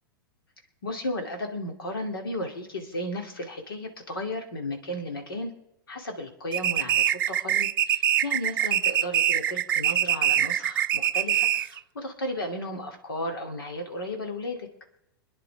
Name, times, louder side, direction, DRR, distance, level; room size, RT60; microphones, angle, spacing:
voice 1, 0.8-5.5 5.9-14.7, left 1 dB, 80° left, 3 dB, 2.7 m, -34 dB
sound 1, 6.5-11.8, right 11 dB, 70° right, 0.4 m, -24 dB
26.0 x 10.0 x 3.5 m, 0.81 s
hypercardioid pair, 105°, 12 cm